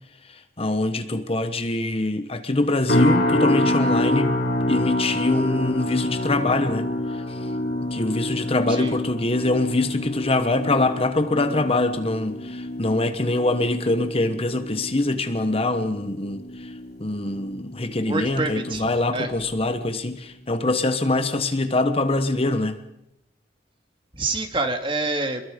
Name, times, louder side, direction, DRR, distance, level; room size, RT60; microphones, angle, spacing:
voice 1, 0.2-4.4 4.7-7.5 7.9-16.7 17.0-22.8, left 2 dB, 30° left, 1.2 m, -24 dB
sound 1, 2.9-18.1 18.4-18.8 19.3-19.5, left 1 dB, 55° left, 3.3 m, -27 dB
voice 2, 18.1-18.9 19.1-19.3 24.1-25.4, right 2 dB, 30° right, 2.4 m, -26 dB
27.0 x 22.0 x 5.2 m
head